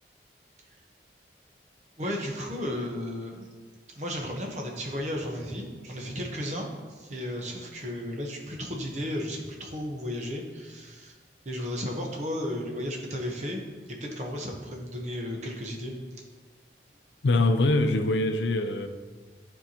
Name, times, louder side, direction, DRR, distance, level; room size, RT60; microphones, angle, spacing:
voice 1, 2.0-3.5 3.9-11.1 11.4-13.6 13.9-15.9, left 1 dB, 40° right, 0 dB, 1.1 m, -34 dB
voice 2, 17.2-18.9, left 2 dB, 85° left, 7 dB, 0.5 m, -23 dB
11.0 x 4.5 x 2.9 m, 1.4 s
head